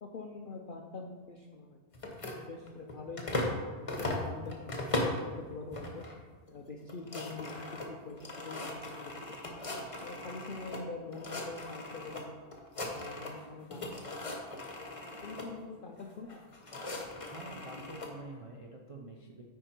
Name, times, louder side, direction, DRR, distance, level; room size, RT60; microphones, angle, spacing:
voice 1, 0.0-1.8 2.3-3.3 3.7-4.9 5.4-6.1 6.5-9.4 9.9-12.4 12.9-14.2 15.2-16.4, left 3 dB, 80° left, 1 dB, 0.4 m, -45 dB
sound 1, 1.9-3.6 3.9-5.3 5.7-6.2 6.5-6.6 6.8-10.8 11.1-12.2 12.5-13.4 13.7-15.5 16.3-18.1, left 2 dB, 25° left, 0.9 m, -38 dB
voice 2, 17.3-19.4, right 2 dB, 55° right, -1 dB, 0.3 m, -47 dB
8.9 x 4.8 x 4.4 m, 1.4 s
omnidirectional pair, 1.6 m